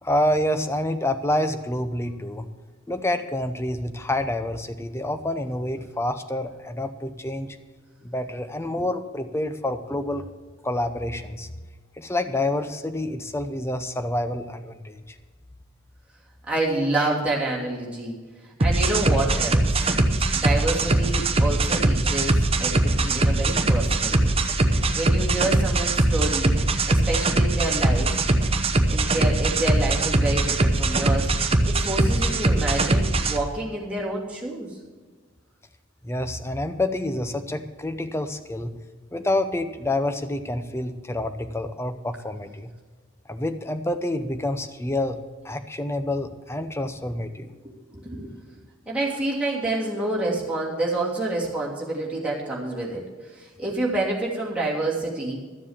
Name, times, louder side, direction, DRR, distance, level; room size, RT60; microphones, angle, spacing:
voice 1, 0.0-2.5 2.9-7.6 8.0-10.3 10.6-11.5 12.0-15.0 36.0-38.7 39.1-42.7 43.3-45.2 45.4-47.5, left 1 dB, 15° left, 9 dB, 0.7 m, -27 dB
voice 2, 16.5-18.2 18.6-19.8 20.3-24.3 24.7-26.5 26.8-28.1 28.9-34.8 47.4-48.3 48.9-53.0 53.3-55.4, right 2 dB, 5° right, -5 dB, 2.8 m, -28 dB
sound 1, 18.6-33.4, right 2 dB, 30° right, 0.8 m, -21 dB
13.0 x 7.4 x 7.2 m, 1.4 s
head